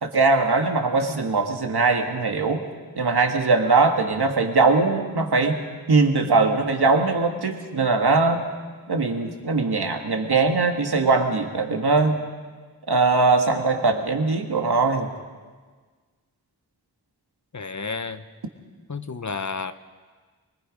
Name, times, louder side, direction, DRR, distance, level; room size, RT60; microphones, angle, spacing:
voice 1, 0.0-2.6 3.0-5.6 5.9-8.4 8.9-12.2 12.9-15.1, right 3 dB, 80° right, 4 dB, 1.9 m, -21 dB
voice 2, 17.5-18.2 18.9-19.7, left 4 dB, 45° left, 10 dB, 1.0 m, -31 dB
23.5 x 21.0 x 5.3 m, 1.5 s
wide cardioid pair, 50°, 38 cm